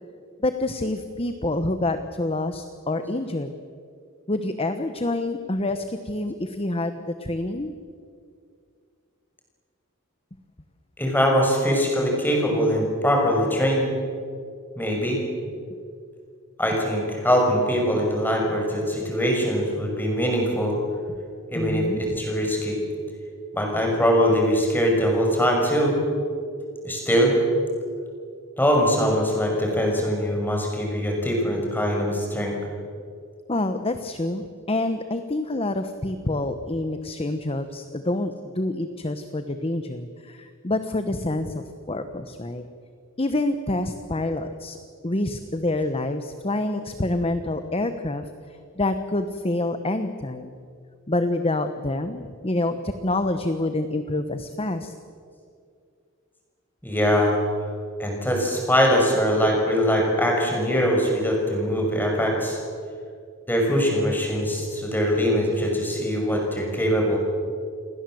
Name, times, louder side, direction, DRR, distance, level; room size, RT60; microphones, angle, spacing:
voice 1, 0.4-3.5 4.3-7.7 21.5-22.0 33.5-42.7 43.2-44.8 45.0-50.5 51.1-54.9, left 2 dB, 25° left, 9 dB, 1.0 m, -27 dB
voice 2, 11.0-13.9 14.8-15.2 16.6-20.8 21.5-22.8 23.5-26.0 26.8-27.4 28.6-32.5 56.8-57.4 58.0-62.6 63.5-67.2, equal, 10° left, 0 dB, 6.1 m, -22 dB
29.0 x 21.0 x 7.8 m, 2.3 s
head